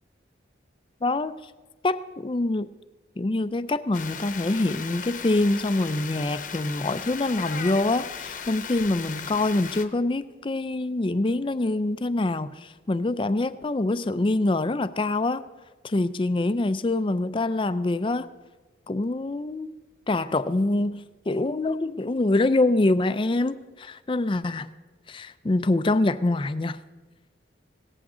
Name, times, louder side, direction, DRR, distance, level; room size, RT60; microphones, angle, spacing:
voice 1, 1.0-1.5 1.8-2.7 3.2-15.4 15.8-18.3 18.9-19.7 20.1-24.7 25.1-26.8, left 2 dB, 25° left, 14 dB, 0.4 m, -25 dB
sound 1, 3.9-9.9, left 7 dB, 45° left, 0.9 m, -37 dB
17.5 x 14.0 x 3.8 m, 1.3 s
head